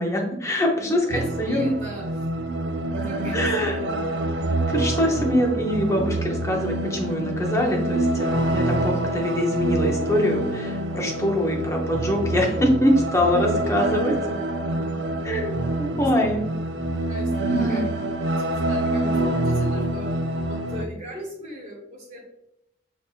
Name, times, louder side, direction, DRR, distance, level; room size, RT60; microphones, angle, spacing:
voice 1, 0.0-1.7 3.3-3.8 4.7-14.2 15.2-16.5 17.5-17.8, equal, 15° left, 0 dB, 0.6 m, -24 dB
voice 2, 0.9-2.3 2.9-3.9 15.9-16.1 17.1-18.0 18.3-20.1 20.4-22.2, right 1 dB, 35° right, -6 dB, 0.7 m, -38 dB
sound 1, 1.1-20.9, right 1 dB, 60° right, 0.3 m, -26 dB
5.3 x 2.6 x 2.4 m, 0.81 s
head